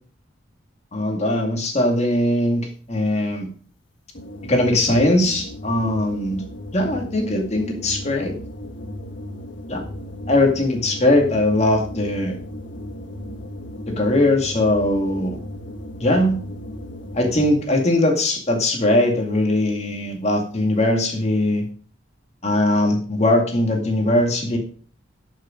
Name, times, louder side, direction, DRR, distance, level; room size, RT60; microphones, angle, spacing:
voice 1, 0.9-3.5 4.5-6.4 6.7-8.3 9.7-9.8 10.3-12.4 13.9-15.4 16.0-16.4 17.1-21.7 22.4-24.6, left 1 dB, 35° left, 2 dB, 2.2 m, -20 dB
sound 1, 4.1-17.8, left 1 dB, 70° left, 1.5 m, -36 dB
12.5 x 6.5 x 5.2 m, 0.43 s
head